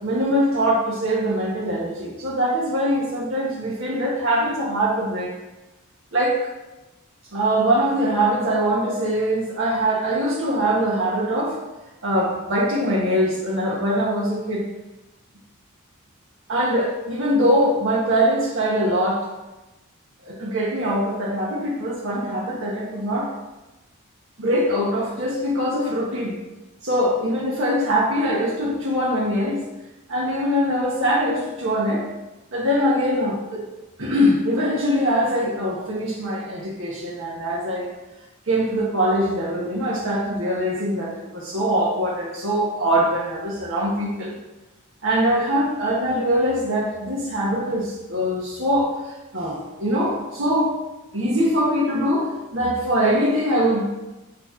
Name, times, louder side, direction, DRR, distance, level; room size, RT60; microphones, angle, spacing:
voice 1, 0.0-5.3 6.1-6.5 7.3-11.6 12.0-14.6 16.5-19.3 20.2-23.3 24.4-26.3 26.8-29.6 30.1-32.1 32.5-33.6 34.0-37.9 38.5-44.3 45.0-50.7 51.1-53.8, equal, 60° right, -5 dB, 1.4 m, -22 dB
7.1 x 3.4 x 5.7 m, 1.1 s
head